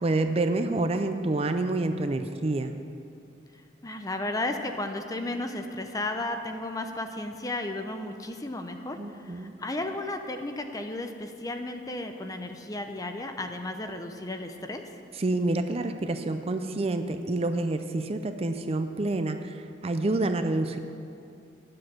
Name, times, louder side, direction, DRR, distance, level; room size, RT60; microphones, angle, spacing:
voice 1, 0.0-2.7 9.0-9.5 15.2-20.8, right 2 dB, 35° right, 8 dB, 0.5 m, -28 dB
voice 2, 3.8-14.8, left 2 dB, 20° left, 6 dB, 0.6 m, -34 dB
10.0 x 7.7 x 7.4 m, 2.4 s
head